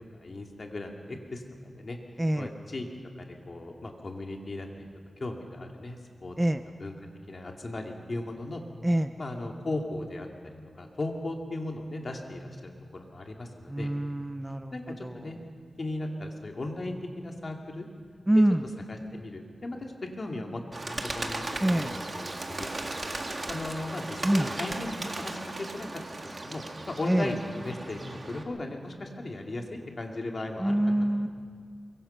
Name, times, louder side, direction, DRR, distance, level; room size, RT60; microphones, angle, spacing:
voice 1, 0.1-2.0 2.4-2.8 3.2-4.9 5.2-6.4 6.8-6.9 7.3-8.6 9.2-13.9 14.7-15.4 15.8-17.9 18.3-18.4 19.1-19.8 20.2-21.4 21.7-22.7 23.5-25.9 26.2-30.7 31.0-31.1, left 2 dB, 45° left, 2 dB, 2.4 m, -37 dB
voice 2, 2.2-2.5 6.4-6.6 8.8-9.1 13.7-15.3 18.3-18.7 21.6-21.9 24.2-24.5 27.1-27.3 30.6-31.3, right 1 dB, 10° right, 9 dB, 0.6 m, -26 dB
Bird, 20.7-28.4, right 2 dB, 35° right, 1.8 m, -36 dB
23.5 x 23.0 x 5.7 m, 2.1 s
wide cardioid pair, 130°, 0 cm